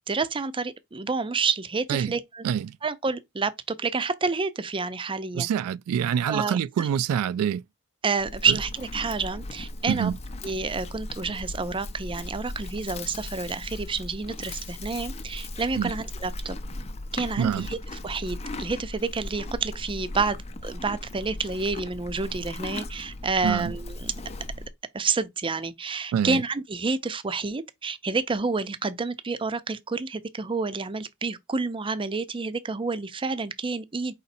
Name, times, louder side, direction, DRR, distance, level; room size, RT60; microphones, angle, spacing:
voice 1, 0.1-2.4 2.8-5.5 6.3-6.9 8.0-10.1 10.4-16.6 17.1-17.8 18.0-20.4 20.6-24.1 24.9-34.1, right 4 dB, 25° right, 0.5 m, -29 dB
voice 2, 2.4-2.8 5.3-7.6 8.5-8.6 9.9-10.2 15.8-15.9 17.4-17.7 23.4-23.7 26.1-26.4, right 8 dB, 90° right, 0.3 m, -26 dB
Livestock farm animals working animals, 8.2-24.7, left 2 dB, 30° left, 0.5 m, -38 dB
5.0 x 4.0 x 2.6 m
head